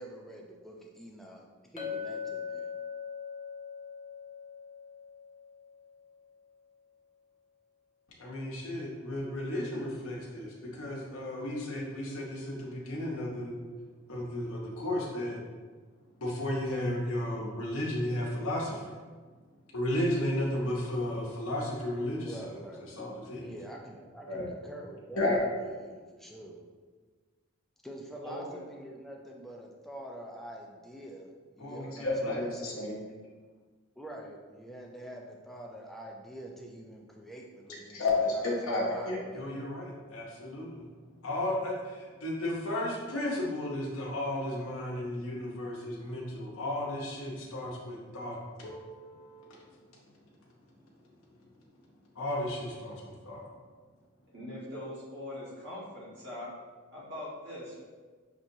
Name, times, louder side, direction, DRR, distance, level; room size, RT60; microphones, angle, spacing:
voice 1, 0.0-2.7 22.2-22.9 23.4-25.3 25.6-26.6 27.8-33.0 34.0-39.5, right 1 dB, ahead, -1 dB, 0.4 m, -46 dB
Chink clink, 1.8-6.2, left 7 dB, 35° left, 0.7 m, -41 dB
voice 2, 8.2-13.5 14.1-15.4 16.2-18.8 19.7-22.4 22.9-23.4 24.3-24.5 25.2-25.4 31.6-32.9 37.9-40.9 41.2-49.7 52.1-53.5, left 1 dB, 80° left, -3 dB, 0.8 m, -33 dB
voice 3, 28.2-28.7 54.3-56.5 56.9-57.8, left 1 dB, 55° right, -7 dB, 1.5 m, -41 dB
6.0 x 2.8 x 2.6 m, 1.5 s
head